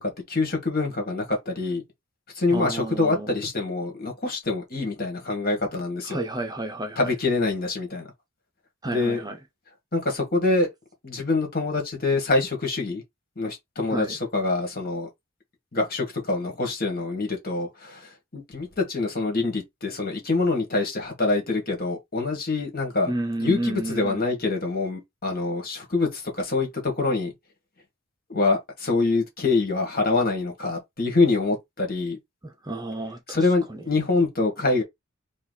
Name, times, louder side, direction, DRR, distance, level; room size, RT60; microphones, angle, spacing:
voice 1, 0.0-1.8 2.4-6.2 7.0-8.1 8.9-9.2 9.9-10.7 11.0-13.0 13.4-15.1 15.7-23.1 23.4-27.3 28.3-32.2 33.3-34.8, left 3 dB, 45° left, 1.9 m, -25 dB
voice 2, 2.5-3.3 6.0-7.1 8.8-9.4 13.9-14.2 23.1-24.2 32.4-33.4 33.7-33.8, right 2 dB, 20° right, 0.7 m, -31 dB
4.3 x 2.5 x 4.0 m
head